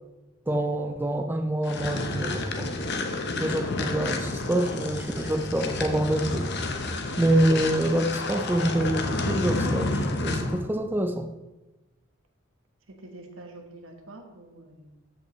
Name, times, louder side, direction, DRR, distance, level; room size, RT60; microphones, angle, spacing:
voice 1, 0.5-2.7 3.3-6.5 7.2-11.3, right 1 dB, 10° right, 0.4 m, -26 dB
sound 1, 1.6-10.6, left 2 dB, 55° left, 0.9 m, -30 dB
voice 2, 12.9-15.1, right 2 dB, 85° right, 1.3 m, -46 dB
13.5 x 5.4 x 3.1 m
head